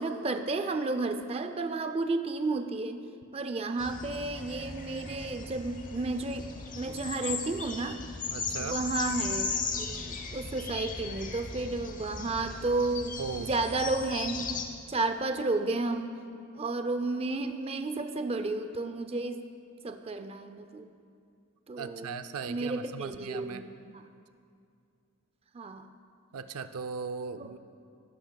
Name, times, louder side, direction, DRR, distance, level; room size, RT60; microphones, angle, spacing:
voice 1, 0.0-3.0 3.3-6.5 6.7-8.0 8.6-9.5 9.8-14.6 14.9-16.1 16.6-19.4 19.8-20.9 21.7-22.2 22.5-24.0 25.5-25.9 27.4-27.5, right 3 dB, 25° right, 7 dB, 0.4 m, -32 dB
sound 1, 3.8-14.6, left 4 dB, 40° left, 0.8 m, -37 dB
voice 2, 8.3-8.8 13.2-13.5 21.8-23.7 26.3-27.6, right 5 dB, 90° right, 10 dB, 0.5 m, -38 dB
15.0 x 11.5 x 2.3 m, 2.4 s
head